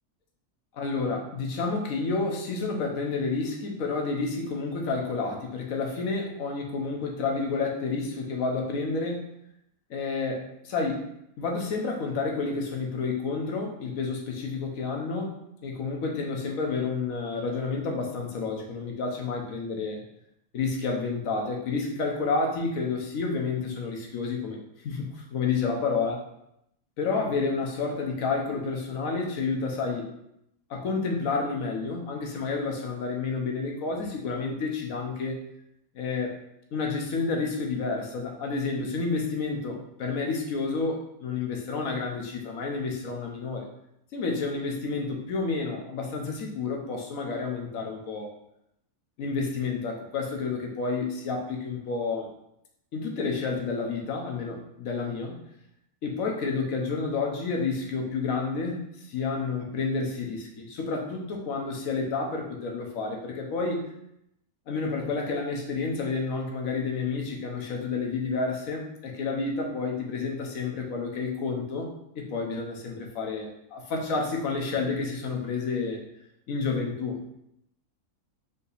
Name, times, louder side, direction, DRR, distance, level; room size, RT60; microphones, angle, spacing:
voice 1, 0.7-9.3 9.9-11.0 11.4-20.0 20.5-24.6 24.8-26.2 27.0-30.1 30.7-35.4 35.9-36.3 36.7-43.7 44.1-48.3 49.2-52.3 52.9-55.4 56.0-63.9 64.7-71.9 72.1-76.0 76.5-77.4, left 4 dB, 75° left, 1 dB, 1.2 m, -30 dB
4.0 x 2.8 x 4.0 m, 0.78 s
omnidirectional pair, 1.4 m